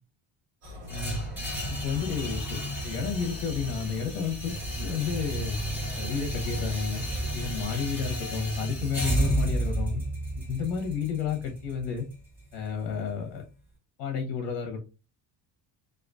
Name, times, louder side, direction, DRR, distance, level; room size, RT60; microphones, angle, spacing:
sound 1, 0.6-7.7, left 1 dB, 45° right, 1.1 m, -42 dB
voice 1, 0.9-1.2 1.8-4.5 4.8-5.6 6.0-7.0 7.3-10.0 10.5-12.1 12.5-13.4 14.0-14.8, left 6 dB, 75° left, 2 dB, 0.7 m, -31 dB
sound 2, 0.9-12.9, right 1 dB, 5° right, 0.5 m, -32 dB
2.3 x 2.3 x 2.3 m, 0.32 s
cardioid pair, 175°, 45 cm